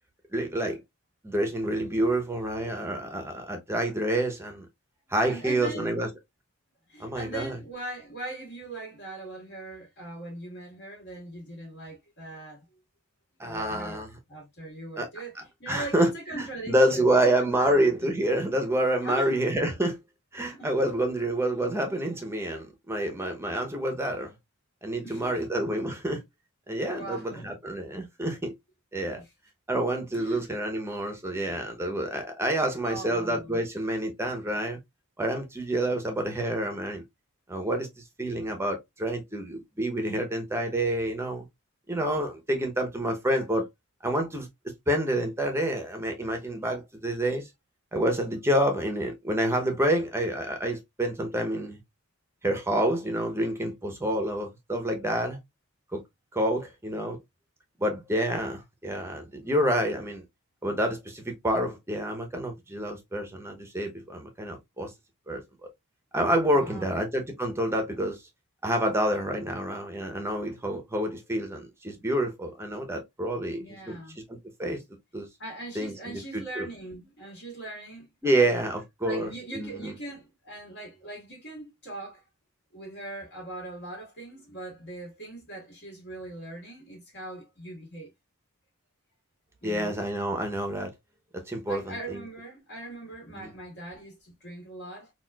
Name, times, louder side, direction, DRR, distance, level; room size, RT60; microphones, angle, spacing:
voice 1, 0.3-0.8 1.2-4.7 5.1-6.1 7.0-7.6 13.4-14.1 15.0-15.1 15.7-20.0 20.3-24.3 24.8-26.2 26.7-28.5 28.9-29.2 29.7-34.8 35.2-37.0 37.5-37.9 38.2-41.5 41.9-43.7 44.0-44.5 44.9-47.5 47.9-51.8 52.4-55.4 55.9-56.0 56.3-57.2 57.8-60.2 60.6-64.9 65.3-65.4 66.1-68.2 68.6-74.0 74.3-74.8 75.1-75.3 75.7-76.7 78.2-79.9 89.6-90.9 91.5-92.2 93.4-93.5, right 1 dB, 10° right, 0.7 m, -28 dB
voice 2, 5.2-5.9 6.9-12.6 13.4-15.3 15.6-18.1 19.0-19.3 20.5-20.7 25.0-25.4 26.9-27.4 29.2-29.3 30.1-30.4 32.8-33.6 66.5-66.9 73.6-74.2 75.4-78.1 78.3-78.5 79.0-82.2 82.7-88.1 89.6-90.0 91.6-95.1, right 2 dB, 50° left, 1.7 m, -41 dB
4.1 x 2.4 x 2.3 m
head